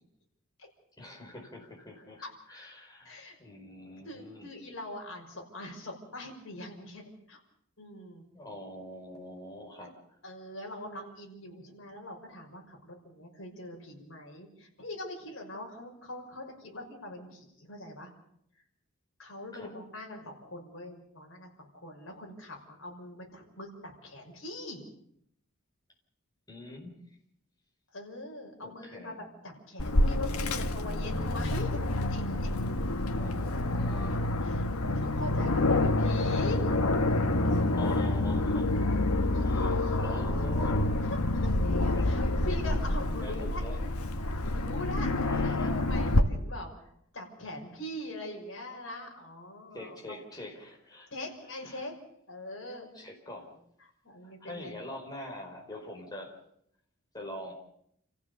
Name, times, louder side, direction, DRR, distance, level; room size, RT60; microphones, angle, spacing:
voice 1, 1.0-4.5 8.3-9.9 19.5-19.7 26.5-26.9 28.6-29.2 33.2-34.2 37.7-40.9 41.9-42.1 43.2-43.8 45.5-45.7 49.7-51.1 51.6-51.8 52.9-53.6 54.2-56.4 57.1-57.5, left 1 dB, 20° left, 0 dB, 4.9 m, -44 dB
voice 2, 3.0-3.4 4.0-7.4 7.8-8.3 10.2-18.1 19.2-24.8 27.9-31.8 32.1-32.5 34.4-34.7 34.9-36.6 39.3-40.2 40.6-40.7 41.0-41.5 42.0-43.6 44.2-50.2 51.1-52.0 52.3-53.0 53.8-54.8, left 1 dB, 60° left, 1 dB, 5.9 m, -42 dB
Aircraft, 29.8-46.2, left 2 dB, 90° left, 1.3 m, -28 dB
29.0 x 15.0 x 6.9 m, 0.72 s
head